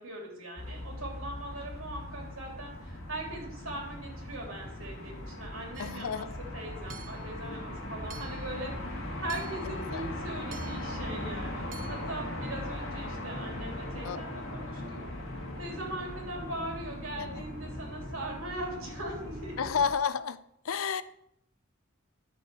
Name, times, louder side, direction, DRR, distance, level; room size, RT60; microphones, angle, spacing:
voice 1, 0.0-6.3 6.5-15.0 15.6-19.7, right 1 dB, 80° right, -1 dB, 3.2 m, -40 dB
sound 1, 0.6-19.9, left 1 dB, 70° left, 1.9 m, -39 dB
Hammer / Chink clink, 5.7-6.1 6.9-7.3 8.1-8.5 9.3-9.7 10.5-10.9 11.7-12.1, right 9 dB, 40° right, 0.4 m, -49 dB
voice 2, 5.8-6.3 9.6-10.1 14.0-14.2 17.2-17.4 19.6-20.4 20.6-21.0, left 6 dB, 85° left, 15 dB, 0.5 m, -31 dB
10.5 x 6.8 x 4.7 m, 0.77 s
head